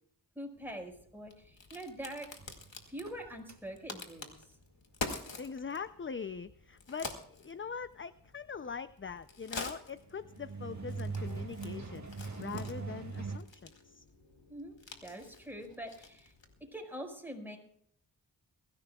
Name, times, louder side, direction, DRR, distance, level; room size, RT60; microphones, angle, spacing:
voice 1, 0.3-2.3 2.9-4.6 14.5-14.7 15.0-16.3 16.7-17.6, right 1 dB, 5° right, 2 dB, 5.1 m, -44 dB
Crack, 0.6-16.7, left 3 dB, 90° left, 2.3 m, -47 dB
sound 1, 2.4-3.9 9.9-13.4, right 4 dB, 40° right, 2.1 m, -41 dB
voice 2, 5.4-12.1 12.4-14.0, left 5 dB, 30° left, 13 dB, 0.5 m, -42 dB
22.5 x 15.5 x 2.3 m, 0.67 s
wide cardioid pair, 55°, 43 cm